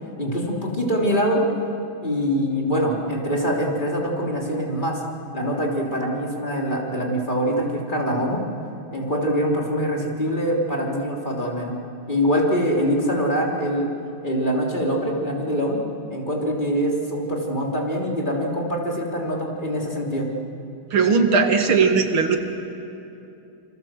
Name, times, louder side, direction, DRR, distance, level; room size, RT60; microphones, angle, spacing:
voice 1, 0.2-1.4 2.0-5.0 5.3-8.4 8.9-11.8 12.1-13.9 14.2-15.8 16.1-20.3, equal, 20° left, -2 dB, 3.4 m, -24 dB
voice 2, 20.9-22.4, right 5 dB, 85° right, 5 dB, 2.8 m, -18 dB
27.5 x 26.5 x 7.6 m, 2.8 s
omnidirectional pair, 2.2 m